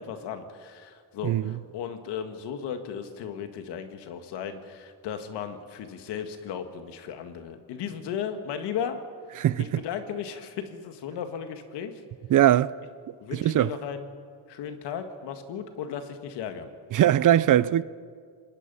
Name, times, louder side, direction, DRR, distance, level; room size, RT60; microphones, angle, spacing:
voice 1, 0.0-9.0 9.6-12.0 13.2-14.1 14.5-16.7, left 8 dB, 85° left, 2.0 m, -35 dB
voice 2, 1.2-1.6 9.4-9.8 12.3-12.7 13.3-13.7 16.9-17.8, right 12 dB, 50° right, 0.6 m, -21 dB
28.5 x 19.5 x 5.6 m
cardioid pair, 100°, 40 cm